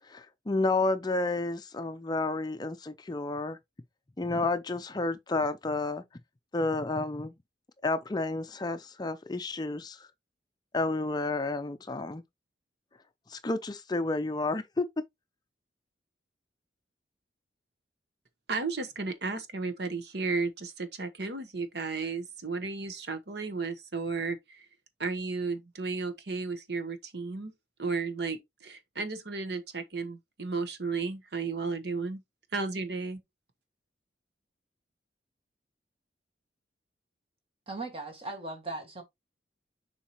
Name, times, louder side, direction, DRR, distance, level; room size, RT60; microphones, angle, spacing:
voice 1, 0.1-3.6 4.2-6.0 6.5-7.3 7.8-10.1 10.7-12.2 13.3-14.9, left 2 dB, 20° left, 0.5 m, -31 dB
voice 2, 18.5-24.7 25.0-27.5 27.8-32.2 32.5-33.2, right 4 dB, 65° right, 1.1 m, -34 dB
voice 3, 37.7-39.0, right 2 dB, 30° right, 1.7 m, -38 dB
7.1 x 4.6 x 2.9 m
head